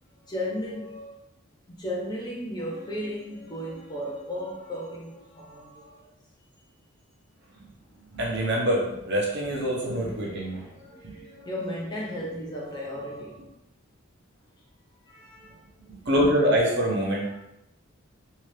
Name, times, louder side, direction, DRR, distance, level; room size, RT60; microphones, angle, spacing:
voice 1, 0.2-1.1 1.7-6.1 10.8-13.4 15.1-15.6 16.2-16.3, equal, 20° left, -3 dB, 0.5 m, -35 dB
voice 2, 8.1-10.7 11.0-11.3 15.9-17.4, equal, 50° right, -2 dB, 0.7 m, -25 dB
2.8 x 2.4 x 3.1 m, 0.84 s
head